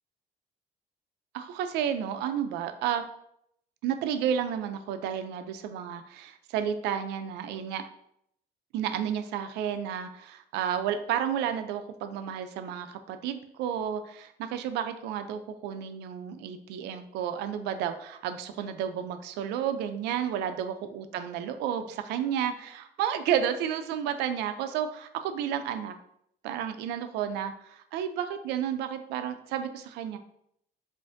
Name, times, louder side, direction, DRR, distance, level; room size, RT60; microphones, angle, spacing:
voice 1, 1.3-3.0 3.8-7.8 8.7-25.9 26.4-30.2, right 9 dB, 85° right, 9 dB, 0.4 m, -31 dB
4.7 x 2.5 x 2.5 m, 0.74 s
cardioid pair, 110°, 17 cm